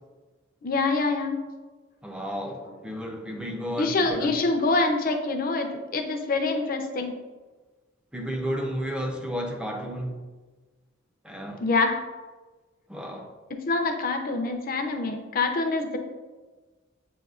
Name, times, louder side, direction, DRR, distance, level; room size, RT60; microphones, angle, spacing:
voice 1, 0.6-1.4 3.8-7.1 11.6-12.0 13.7-16.0, left 3 dB, 45° left, 0.5 m, -25 dB
voice 2, 2.0-4.3 8.1-10.2 11.2-11.6 12.9-13.3, equal, 5° right, 0.5 m, -32 dB
7.8 x 2.8 x 2.4 m
head